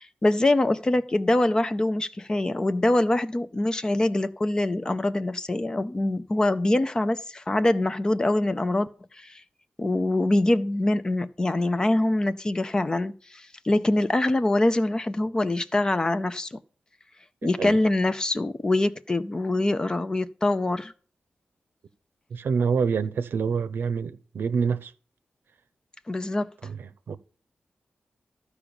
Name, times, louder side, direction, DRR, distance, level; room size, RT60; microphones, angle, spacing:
voice 1, 0.0-8.9 9.1-9.4 9.8-16.6 17.4-20.9 26.1-26.5, left 1 dB, 20° left, 0.5 m, -24 dB
voice 2, 22.3-24.9 26.6-27.2, right 6 dB, 90° right, 0.7 m, -27 dB
13.5 x 4.9 x 6.9 m
wide cardioid pair, 175°, 4 cm